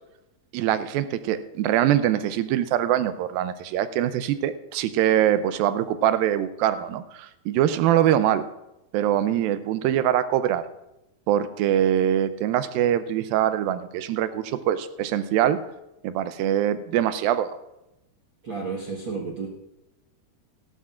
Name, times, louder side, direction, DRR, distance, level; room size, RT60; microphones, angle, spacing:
voice 1, 0.5-8.4 8.9-10.6 11.3-15.6 16.0-17.6, right 11 dB, 85° right, 12 dB, 2.5 m, -23 dB
voice 2, 18.4-19.5, right 4 dB, 60° right, -2 dB, 1.3 m, -31 dB
17.0 x 12.0 x 2.5 m, 0.93 s
omnidirectional pair, 4.1 m